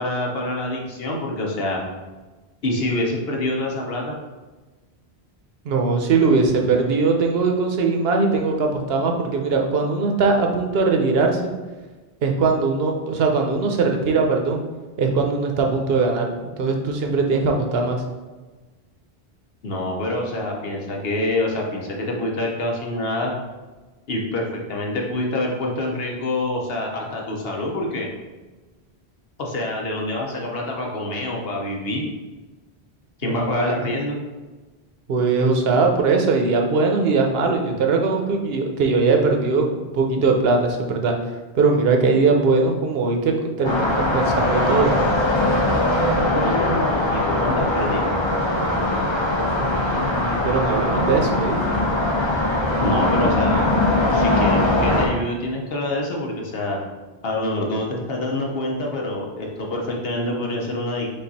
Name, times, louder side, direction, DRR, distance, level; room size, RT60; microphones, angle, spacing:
voice 1, 0.0-1.8 2.6-4.2 19.6-23.3 24.1-28.1 29.4-32.0 33.2-34.2 46.3-48.1 52.8-53.7 54.1-56.8 57.2-61.1, left 1 dB, 65° left, -1 dB, 1.0 m, -26 dB
voice 2, 5.6-11.5 12.2-14.6 15.0-18.0 33.2-33.9 35.1-41.1 41.5-44.9 49.5-51.6, right 4 dB, 70° right, 2 dB, 0.9 m, -20 dB
sound 1, 43.6-55.1, left 1 dB, 30° left, 0.7 m, -21 dB
5.3 x 2.4 x 4.0 m, 1.2 s
omnidirectional pair, 1.1 m